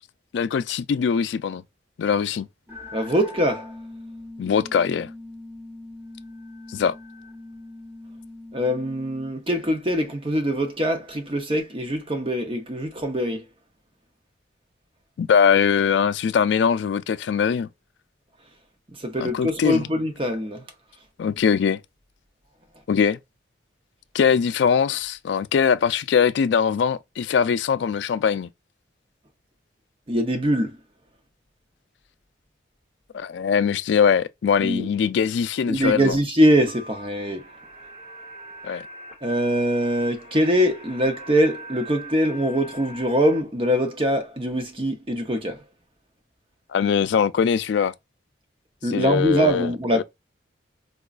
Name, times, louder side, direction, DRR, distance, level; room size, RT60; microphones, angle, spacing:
voice 1, 0.3-1.6 2.0-2.5 4.4-5.1 6.7-6.9 15.2-17.7 19.2-19.9 21.2-21.8 22.9-23.2 24.1-28.5 33.1-36.2 38.6-38.8 46.7-47.9 48.9-49.7 50.0-50.1, left 7 dB, 70° left, 0.3 m, -21 dB
sound 1, 2.7-9.3, left 2 dB, 10° right, 1.0 m, -41 dB
voice 2, 2.9-3.7 8.5-13.5 19.0-20.7 30.1-30.8 34.6-34.9 35.7-37.5 39.2-45.6 48.8-50.0, equal, 30° right, 0.7 m, -23 dB
sound 2, 36.6-43.4, right 1 dB, 45° right, 1.0 m, -42 dB
4.9 x 2.2 x 2.4 m
head